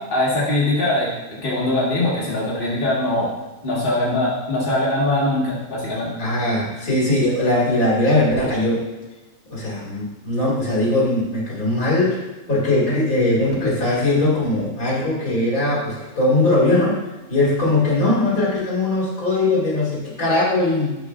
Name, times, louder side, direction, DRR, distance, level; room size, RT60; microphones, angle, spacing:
voice 1, 0.1-3.3 3.6-6.1, left 1 dB, 40° left, -6 dB, 1.8 m, -21 dB
voice 2, 6.2-8.9 9.5-12.2 12.5-17.0 17.3-21.0, left 2 dB, 85° left, -5 dB, 2.4 m, -20 dB
10.5 x 4.8 x 2.4 m, 1.1 s
omnidirectional pair, 1.5 m